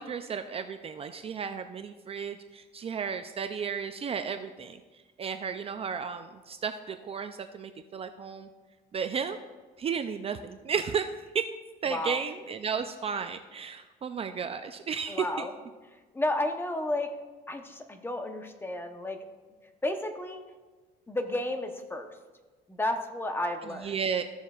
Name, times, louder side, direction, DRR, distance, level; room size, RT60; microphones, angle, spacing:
voice 1, 0.0-4.8 5.2-8.5 8.9-9.4 9.8-11.1 11.3-11.5 11.8-15.5 23.8-24.2, right 6 dB, 35° right, 8 dB, 0.4 m, -33 dB
voice 2, 15.1-15.5 16.1-17.1 17.5-19.2 19.8-20.4 21.1-22.1 22.7-23.9, left 1 dB, 15° left, 5 dB, 0.9 m, -32 dB
15.0 x 7.0 x 2.4 m, 1.3 s
cardioid pair, 110°, 17 cm